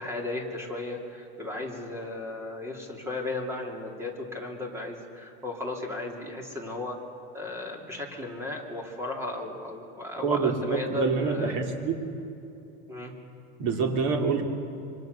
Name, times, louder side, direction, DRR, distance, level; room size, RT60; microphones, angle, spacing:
voice 1, 0.0-7.0 7.3-11.6 12.9-13.1, left 2 dB, 10° right, 1 dB, 2.8 m, -35 dB
voice 2, 10.2-11.9 13.6-14.4, right 5 dB, 55° right, 3 dB, 3.2 m, -26 dB
25.5 x 25.0 x 6.7 m, 2.8 s
supercardioid pair, 165°, 30 cm